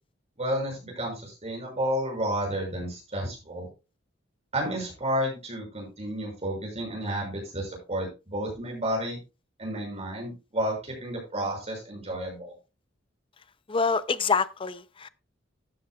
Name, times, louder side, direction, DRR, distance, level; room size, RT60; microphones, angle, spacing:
voice 1, 0.4-3.7 4.5-9.2 9.6-12.5, equal, 35° right, 6.4 m, -31 dB
voice 2, 13.7-15.1, left 5 dB, 25° left, 0.6 m, -26 dB
13.5 x 9.5 x 2.4 m
head